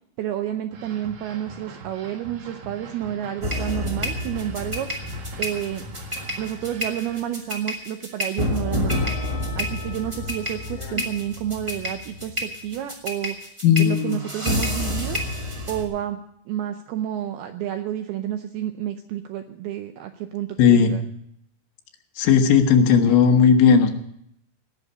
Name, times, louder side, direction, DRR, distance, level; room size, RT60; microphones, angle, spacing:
voice 1, 0.2-4.9 5.4-5.9 6.4-9.1 9.6-13.4 13.8-15.2 15.7-16.2 16.5-21.0, right 11 dB, 85° right, 7 dB, 2.2 m, -30 dB
sound 1, 0.7-7.3, right 3 dB, 65° right, 3.7 m, -42 dB
sound 2, 3.4-15.8, left 1 dB, 15° right, 1.0 m, -29 dB
voice 2, 13.6-14.2 20.6-21.0 22.2-23.9, left 7 dB, 85° left, 5 dB, 3.7 m, -16 dB
18.5 x 6.4 x 9.6 m, 0.72 s
omnidirectional pair, 5.3 m